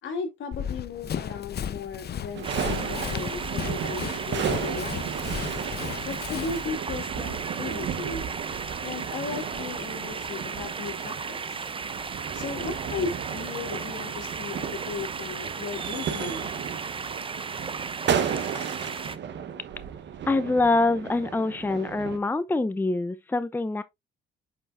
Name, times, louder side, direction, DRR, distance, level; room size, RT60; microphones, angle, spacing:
voice 1, 0.0-5.1 6.1-8.3 8.8-11.6 12.3-16.5, left 5 dB, 75° left, 2.2 m, -36 dB
Run, 0.5-6.7, left 9 dB, 55° left, 0.8 m, -35 dB
sound 1, 2.3-22.2, right 8 dB, 65° right, 1.1 m, -34 dB
sound 2, 2.4-19.2, right 5 dB, 25° right, 0.7 m, -35 dB
voice 2, 20.3-23.8, left 2 dB, 10° left, 0.6 m, -25 dB
7.7 x 5.5 x 2.6 m
cardioid pair, 90°, 20 cm